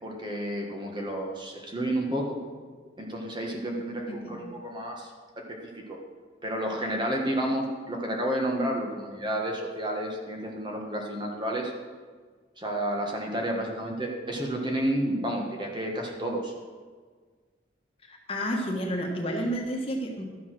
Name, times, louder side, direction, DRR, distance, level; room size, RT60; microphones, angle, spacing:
voice 1, 0.0-2.4 3.0-5.1 5.4-6.0 6.4-11.7 12.6-16.5, right 1 dB, 25° right, 0 dB, 1.5 m, -31 dB
voice 2, 4.1-4.4 18.1-20.3, equal, 30° left, 0 dB, 1.6 m, -31 dB
13.0 x 7.4 x 6.2 m, 1.5 s
head